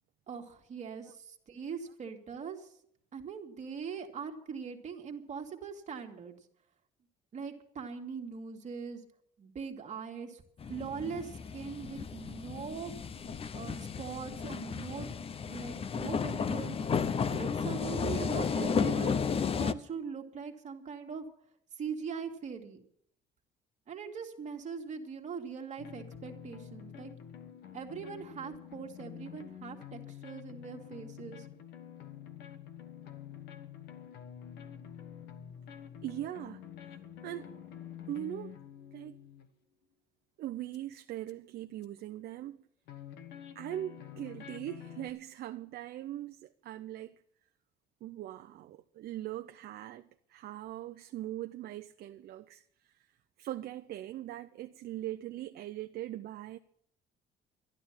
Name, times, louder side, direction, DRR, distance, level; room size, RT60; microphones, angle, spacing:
voice 1, 0.3-2.8 3.1-6.4 7.3-9.0 9.4-10.4 10.7-13.2 13.5-15.1 15.4-16.8 17.3-19.3 19.5-21.3 21.7-22.8 23.9-27.1 27.7-31.5, right 6 dB, 45° right, 2.0 m, -41 dB
sound 1, 10.6-19.7, left 6 dB, 35° left, 0.7 m, -33 dB
sound 2, 25.8-39.5 40.7-40.8 41.3-41.4 41.8-41.9 42.9-45.1, left 10 dB, 80° left, 1.4 m, -48 dB
voice 2, 36.0-36.6 37.2-37.5 38.1-38.6 38.9-39.2 40.4-42.6 43.5-47.2 48.0-53.1 53.4-56.6, right 13 dB, 65° right, 0.7 m, -41 dB
12.0 x 12.0 x 7.3 m
cardioid pair, 110°, 17 cm